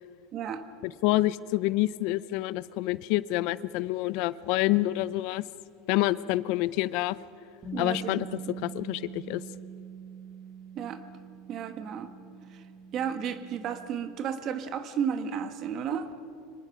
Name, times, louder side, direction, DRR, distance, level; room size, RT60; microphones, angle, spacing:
voice 1, 0.3-0.6 7.7-8.1 10.7-11.0 11.5-12.1 12.5-12.6 12.9-16.1, right 8 dB, 40° right, 10 dB, 1.4 m, -33 dB
voice 2, 0.8-5.4 5.9-7.2 7.8-9.4, left 17 dB, 60° left, 18 dB, 0.5 m, -27 dB
Bass guitar, 7.6-13.9, right 4 dB, 20° right, 3.6 m, -43 dB
24.5 x 19.5 x 5.9 m, 2.6 s
supercardioid pair, 145°, 0 cm